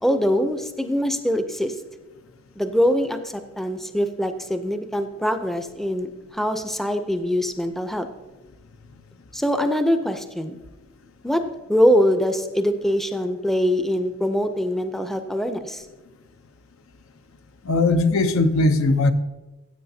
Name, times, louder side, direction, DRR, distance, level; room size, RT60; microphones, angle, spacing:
voice 1, 0.0-1.8 2.6-8.1 9.3-10.6 11.2-11.4 11.7-15.8, equal, ahead, 8 dB, 0.5 m, -23 dB
voice 2, 17.6-19.1, left 2 dB, 80° left, 9 dB, 0.7 m, -19 dB
15.0 x 8.0 x 2.7 m, 1.1 s
head